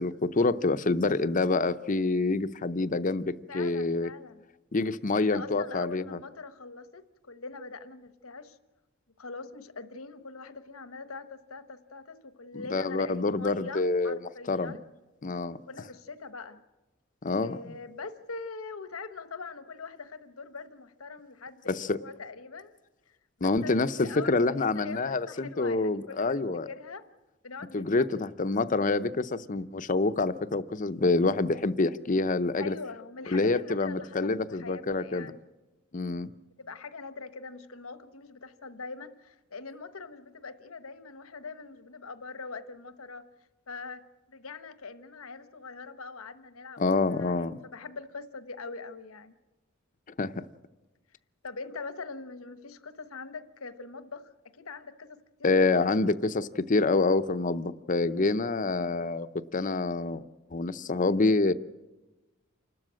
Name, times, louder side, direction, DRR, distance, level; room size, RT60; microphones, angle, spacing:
voice 1, 0.0-4.1 4.7-6.2 12.5-14.2 14.5-14.8 15.2-15.6 17.2-17.8 21.7-22.0 23.4-26.7 27.7-32.8 33.3-35.3 35.9-36.3 46.8-47.5 50.2-50.4 55.4-59.3 59.5-60.2 60.5-61.5, left 3 dB, 40° left, 12 dB, 0.6 m, -27 dB
voice 2, 3.5-4.5 5.1-8.6 9.2-14.8 15.7-16.6 17.4-22.7 23.4-27.0 27.4-28.0 28.4-28.7 29.0-29.1 32.6-35.4 36.6-43.2 43.7-49.3 51.4-55.8, left 4 dB, 85° left, 11 dB, 1.2 m, -43 dB
28.5 x 12.5 x 7.6 m, 1.1 s
head